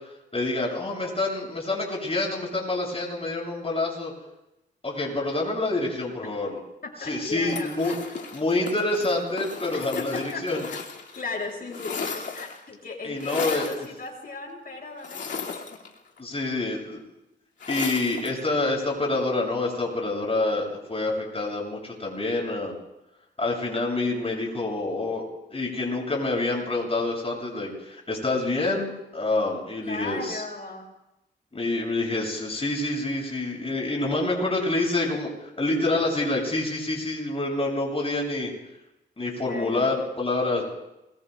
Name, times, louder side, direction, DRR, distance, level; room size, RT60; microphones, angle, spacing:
voice 1, 0.3-4.1 4.8-6.6 7.1-7.9 8.3-10.6 13.0-13.7 16.2-17.0 17.7-22.7 23.4-25.2 25.5-30.4 31.5-38.5 39.2-40.6, left 2 dB, 30° left, -2 dB, 7.9 m, -27 dB
voice 2, 6.8-7.7 9.7-10.8 11.1-15.6 29.8-30.9 39.4-39.9, left 3 dB, 50° left, -2 dB, 7.5 m, -36 dB
sound 1, 7.5-11.2 11.5-12.7 13.2-13.9 15.0-16.2 17.6-18.4, left 5 dB, 70° left, 2.4 m, -35 dB
27.0 x 22.5 x 2.4 m, 0.92 s
cardioid pair, 60°, 19 cm